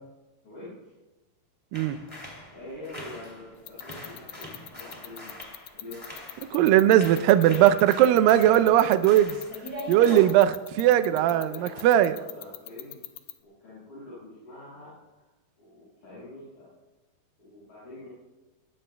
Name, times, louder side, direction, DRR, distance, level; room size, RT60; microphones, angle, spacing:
voice 1, 0.4-0.9 2.5-5.5 5.7-7.5 11.0-13.0 13.4-15.3 15.6-16.8 17.4-18.1, left 1 dB, 55° left, -11 dB, 7.5 m, -45 dB
sound 1, 1.7-3.6 3.8-6.6 6.9-10.3, equal, 10° left, 1.9 m, -42 dB
sound 2, 3.7-13.3, left 15 dB, 80° left, 2.3 m, -39 dB
voice 2, 6.5-9.4 9.9-12.2, right 12 dB, 80° right, 10 dB, 2.2 m, -19 dB
21.5 x 19.0 x 2.3 m, 1.1 s
omnidirectional pair, 4.5 m